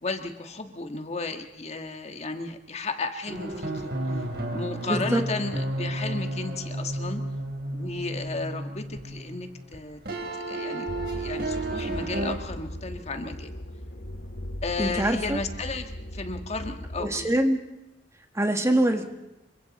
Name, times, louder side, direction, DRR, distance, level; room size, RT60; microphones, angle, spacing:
voice 1, 0.0-3.9 4.5-7.2 7.7-10.0 10.5-10.9 11.1-13.6 14.6-15.8 16.1-17.3, left 3 dB, 40° left, 6 dB, 1.5 m, -34 dB
sound 1, 3.3-9.8 10.0-12.4, right 1 dB, 60° right, 4.1 m, -32 dB
voice 2, 4.9-5.2 14.8-15.4 17.0-17.6 18.3-19.1, right 1 dB, 15° right, 5 dB, 1.8 m, -24 dB
sound 2, 10.9-17.3, equal, 70° left, 2.2 m, -38 dB
27.5 x 24.5 x 4.1 m, 0.96 s
head